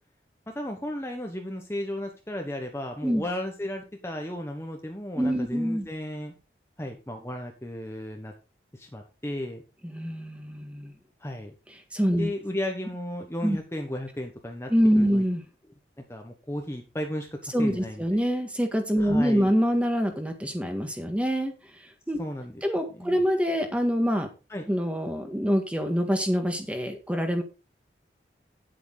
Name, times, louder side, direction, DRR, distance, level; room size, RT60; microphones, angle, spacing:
voice 1, 0.5-6.3 6.8-8.3 8.7-9.6 11.2-11.5 12.2-14.7 15.0-15.2 16.1-18.2 19.0-19.5 22.2-22.6 23.0-23.2 24.5-24.6, left 1 dB, 15° left, 3 dB, 1.2 m, -34 dB
voice 2, 5.2-5.9 9.8-10.9 11.9-12.3 13.4-13.6 14.7-15.4 17.5-21.5 22.1-22.2 22.6-24.3 24.7-27.4, equal, 5° right, 5 dB, 1.7 m, -25 dB
9.9 x 8.4 x 4.0 m, 0.30 s
head